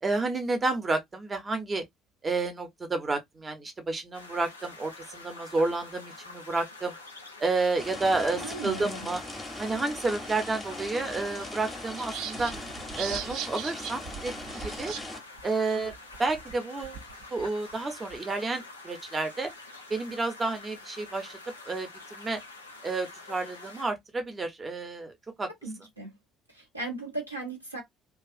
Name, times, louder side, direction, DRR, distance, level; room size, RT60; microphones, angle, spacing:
voice 1, 0.0-1.8 2.2-6.9 7.4-9.2 9.6-12.5 13.0-14.9 15.4-15.9 16.2-17.0 17.3-19.5 19.9-21.4 21.7-22.4 22.8-25.5, right 3 dB, 25° right, 0.7 m, -30 dB
sound 1, 4.1-23.9, left 3 dB, 80° left, 0.4 m, -47 dB
sound 2, 7.8-15.2, left 1 dB, 15° left, 0.7 m, -40 dB
voice 2, 8.4-9.1 25.6-26.1 26.5-27.8, right 2 dB, 90° right, 0.8 m, -37 dB
sound 3, 12.0-15.1 15.4-15.5 15.8-18.2, right 9 dB, 60° right, 0.3 m, -39 dB
2.4 x 2.4 x 2.4 m
figure-of-eight pair, 55°, 0 cm